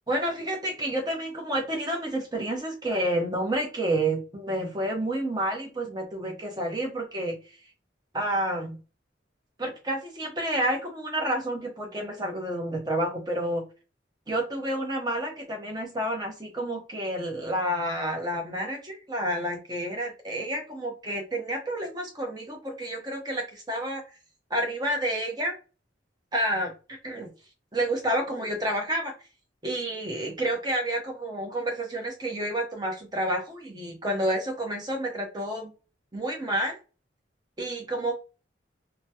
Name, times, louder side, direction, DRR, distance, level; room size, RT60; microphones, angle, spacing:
voice 1, 0.1-7.6 8.1-8.8 9.6-13.6 14.3-24.0 24.5-25.5 26.3-27.3 27.7-29.1 29.6-35.7 36.1-36.8 37.6-38.1, right 1 dB, 20° right, 1 dB, 0.9 m, -29 dB
2.9 x 2.2 x 2.8 m, 0.33 s
head